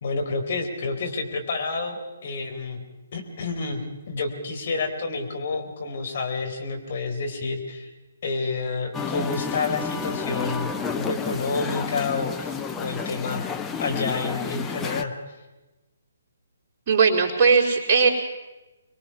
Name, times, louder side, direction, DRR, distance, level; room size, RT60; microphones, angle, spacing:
voice 1, 0.0-2.8 3.1-7.9 8.2-13.4 13.8-15.1, left 4 dB, 50° left, 3 dB, 3.8 m, -29 dB
Musical instrument, 8.9-15.0, left 5 dB, 10° left, 0.9 m, -31 dB
voice 2, 16.9-18.1, right 5 dB, 35° right, -1 dB, 4.2 m, -18 dB
26.0 x 22.0 x 5.7 m, 1.1 s
figure-of-eight pair, 135°, 0 cm